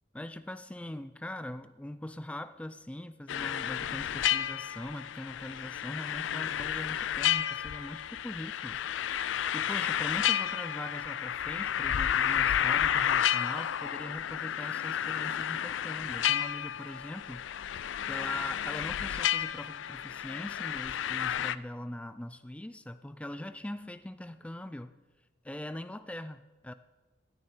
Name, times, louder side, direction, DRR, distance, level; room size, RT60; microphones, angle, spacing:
voice 1, 0.1-8.8 9.2-17.5 18.0-24.9 25.4-26.7, left 1 dB, 5° left, 12 dB, 0.4 m, -41 dB
sound 1, 3.3-21.5, left 10 dB, 80° left, 0.4 m, -31 dB
16.0 x 10.0 x 4.4 m, 1.2 s
head